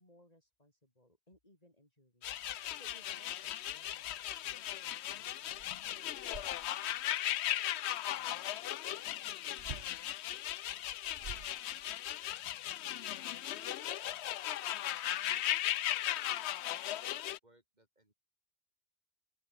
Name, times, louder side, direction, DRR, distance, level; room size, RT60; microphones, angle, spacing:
voice 1, 0.0-2.3 2.7-5.3 5.6-6.3, left 1 dB, 35° left, 5.7 m, -64 dB
sound 1, 2.2-17.4, left 12 dB, 90° left, 0.9 m, -37 dB
sound 2, 5.1-5.2 5.5-7.0 9.6-10.0 10.9-12.1, right 4 dB, 80° right, 2.2 m, -49 dB
voice 2, 8.1-10.8 11.3-12.1 12.9-16.7 17.4-18.1, right 1 dB, 40° right, 4.3 m, -70 dB
open air
omnidirectional pair, 1.1 m